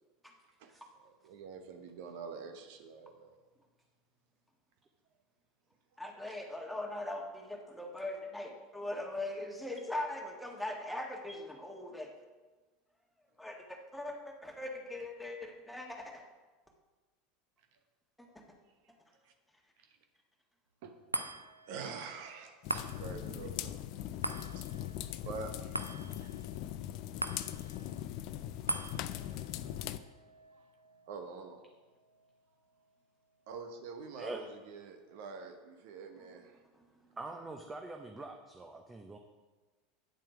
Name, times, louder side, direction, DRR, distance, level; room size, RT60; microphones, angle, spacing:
voice 1, 1.0-3.3 19.2-19.3 19.8-19.9 20.8-20.9 21.7-23.7 24.5-24.7 25.2-26.5 28.5-28.8 29.3-29.7 30.5-30.6 31.1-31.6 33.5-36.6, right 5 dB, 55° right, 5 dB, 1.0 m, -46 dB
voice 2, 6.0-12.1 13.4-16.3 18.2-18.3 36.7-36.9, left 1 dB, 5° left, 1 dB, 1.7 m, -40 dB
sound 1, 21.1-33.7 34.2-34.3, right 1 dB, 90° right, 0.4 m, -44 dB
sound 2, 22.6-30.0, left 12 dB, 50° left, 0.4 m, -40 dB
voice 3, 37.2-39.2, right 2 dB, 15° right, 3 dB, 0.8 m, -44 dB
9.4 x 7.5 x 5.0 m, 1.2 s
figure-of-eight pair, 75°, 0 cm